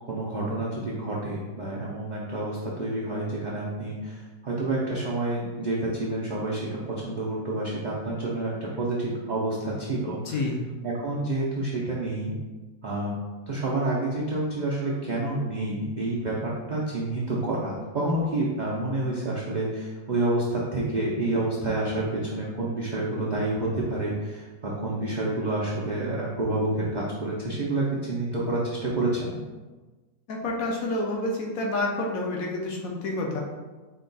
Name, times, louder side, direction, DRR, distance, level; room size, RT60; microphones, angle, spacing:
voice 1, 0.1-10.3 10.8-12.3 12.8-13.2 13.5-29.4, right 2 dB, 65° right, -6 dB, 0.4 m, -28 dB
voice 2, 10.3-10.6 30.3-33.4, left 2 dB, 65° left, -1 dB, 1.1 m, -28 dB
4.9 x 2.2 x 3.8 m, 1.2 s
omnidirectional pair, 1.7 m